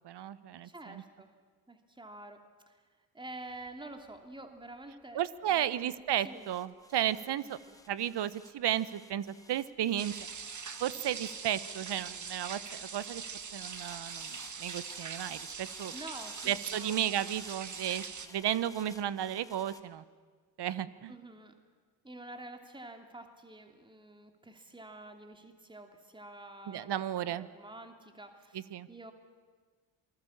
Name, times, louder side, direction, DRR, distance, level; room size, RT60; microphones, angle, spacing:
voice 1, 0.0-1.0 5.1-7.6 7.9-10.1 10.8-13.2 13.5-15.9 16.4-18.0 18.3-20.0 20.6-21.1 26.7-27.5 28.5-28.9, right 11 dB, 55° right, 17 dB, 1.1 m, -34 dB
voice 2, 0.6-1.3 1.7-5.2 5.5-5.9 6.2-6.5 7.7-7.8 15.9-17.0 21.1-21.6 22.0-29.1, right 2 dB, 10° right, 5 dB, 2.7 m, -48 dB
sound 1, 3.5-12.9 13.6-19.8, left 1 dB, 5° left, 2.3 m, -56 dB
sound 2, 10.0-18.3, right 6 dB, 35° right, 1.9 m, -42 dB
27.5 x 20.0 x 7.3 m, 1.5 s
supercardioid pair, 60°, 50 cm